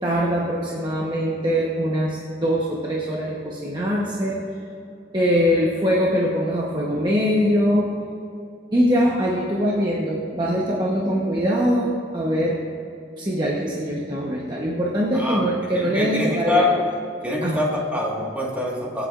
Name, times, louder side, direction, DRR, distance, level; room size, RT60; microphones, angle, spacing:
voice 1, 0.0-4.5 5.1-7.9 8.7-12.6 13.2-16.8 17.4-17.6, equal, 25° right, -4 dB, 1.0 m, -22 dB
voice 2, 15.8-16.7 17.2-19.1, left 2 dB, 10° right, -3 dB, 1.6 m, -24 dB
24.0 x 8.3 x 2.5 m, 2.6 s
head